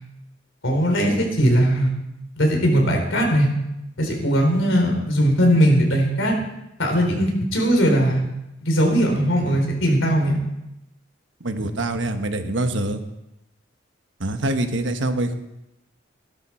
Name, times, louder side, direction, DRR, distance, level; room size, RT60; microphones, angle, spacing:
voice 1, 0.6-1.9 2.4-3.5 4.0-6.3 6.8-8.2 8.6-10.4, equal, 80° left, 2 dB, 3.7 m, -19 dB
voice 2, 11.4-13.0 14.2-15.4, right 1 dB, 70° right, 7 dB, 1.2 m, -24 dB
16.5 x 12.5 x 4.4 m, 0.90 s
head